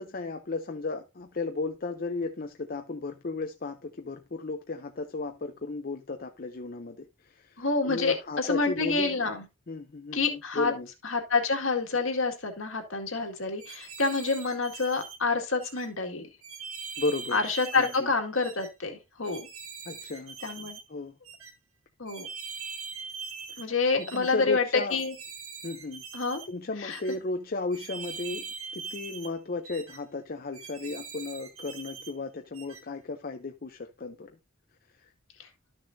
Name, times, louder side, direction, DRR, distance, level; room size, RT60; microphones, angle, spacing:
voice 1, 0.0-9.3 9.7-10.9 17.0-17.4 17.7-18.1 19.9-21.1 24.0-25.0 25.6-26.0 26.5-28.5 28.7-34.4 35.0-35.1, left 3 dB, 40° left, 0.6 m, -34 dB
voice 2, 7.6-9.4 10.1-10.7 11.0-16.3 17.3-19.4 20.4-20.8 22.0-22.3 23.6-25.1 26.1-26.4 26.8-27.0, left 4 dB, 65° left, 2.0 m, -28 dB
sound 1, 13.6-15.2 15.6-15.9 16.4-18.0 18.4-18.7 19.2-20.8 21.2-21.5 22.1-23.7 24.0-24.3 24.9-26.5 26.9-27.2 27.7-29.3 29.6-30.0 30.5-32.1 32.5-32.8, right 5 dB, 75° right, 1.7 m, -42 dB
13.0 x 6.3 x 2.7 m
head